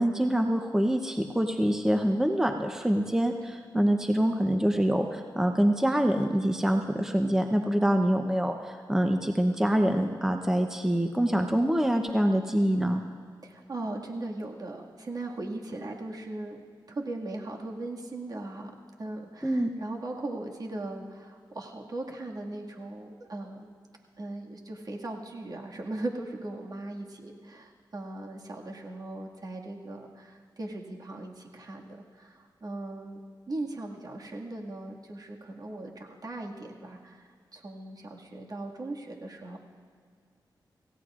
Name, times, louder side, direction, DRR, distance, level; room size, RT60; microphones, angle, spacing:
voice 1, 0.0-13.0 19.4-19.7, equal, 5° right, 4 dB, 0.8 m, -25 dB
voice 2, 13.4-16.6 16.9-23.7 24.2-33.2 33.5-39.6, right 2 dB, 50° right, -1 dB, 2.0 m, -39 dB
27.0 x 16.0 x 2.5 m, 2.1 s
cardioid pair, 80°, 8 cm